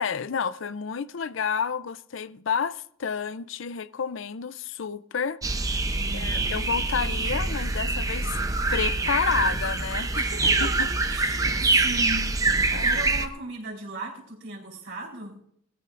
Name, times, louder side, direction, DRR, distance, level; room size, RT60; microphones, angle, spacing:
voice 1, 0.0-5.4 6.1-8.4 8.7-10.3 10.8-10.9 12.7-13.0, left 6 dB, 70° left, 0.5 m, -30 dB
sound 1, 5.4-13.3, right 3 dB, 15° right, 0.7 m, -25 dB
voice 2, 5.9-6.6 10.2-15.4, right 2 dB, 65° right, 4.0 m, -37 dB
20.5 x 14.5 x 2.5 m
head